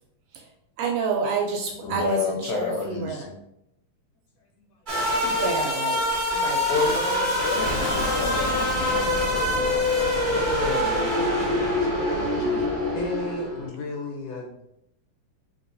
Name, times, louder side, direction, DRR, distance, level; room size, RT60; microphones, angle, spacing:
voice 1, 0.8-3.3 5.2-6.0 6.3-6.9, right 4 dB, 80° right, 1 dB, 1.6 m, -29 dB
voice 2, 1.8-3.4 5.0-5.3 6.7-9.9 10.2-13.0, left 4 dB, 90° left, 2 dB, 2.1 m, -31 dB
sound 1, 4.9-13.7, left 1 dB, 50° right, 0.5 m, -25 dB
sound 2, 7.6-12.5, left 1 dB, 25° left, 0.9 m, -34 dB
voice 3, 12.9-14.7, left 1 dB, 75° left, -1 dB, 1.6 m, -33 dB
4.0 x 3.7 x 2.6 m, 0.79 s
omnidirectional pair, 3.3 m